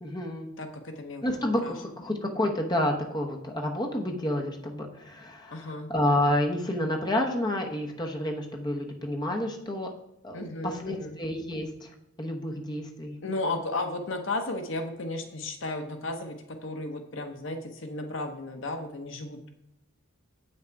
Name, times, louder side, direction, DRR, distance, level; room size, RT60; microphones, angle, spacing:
voice 1, 0.0-0.5 1.2-9.9 10.2-13.2, left 1 dB, 20° left, 1 dB, 0.9 m, -29 dB
voice 2, 0.6-1.3 1.6-1.7 5.5-5.9 10.3-11.2 13.2-19.5, left 2 dB, 60° left, 6 dB, 0.9 m, -34 dB
8.1 x 6.1 x 4.6 m, 0.83 s
head